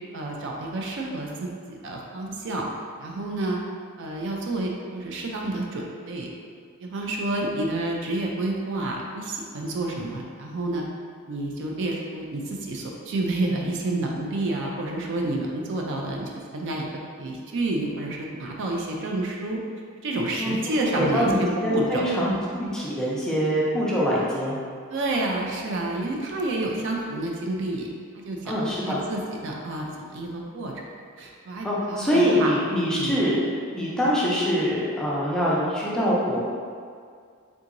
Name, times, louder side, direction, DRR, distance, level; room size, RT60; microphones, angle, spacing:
voice 1, 0.1-2.7 3.0-3.6 4.0-6.3 6.8-10.9 11.3-16.9 17.2-19.6 20.0-22.1 24.9-30.7 31.2-32.5 32.9-33.2, right 2 dB, 55° right, -1 dB, 0.4 m, -29 dB
voice 2, 21.0-24.6 28.5-29.0 31.6-33.4 33.7-36.4, equal, 5° left, -7 dB, 0.5 m, -24 dB
3.5 x 2.9 x 2.5 m, 2.2 s
head